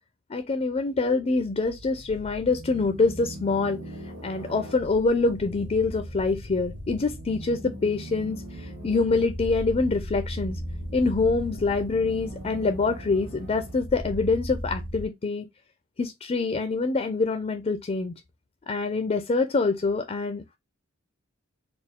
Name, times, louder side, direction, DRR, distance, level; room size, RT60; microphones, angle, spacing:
voice 1, 0.3-3.8 4.2-10.6 10.9-15.5 16.0-18.1 18.7-20.6, left 3 dB, 30° left, 0.4 m, -25 dB
sound 1, 1.3-15.1, equal, 60° right, 1.8 m, -38 dB
4.3 x 2.3 x 3.5 m
head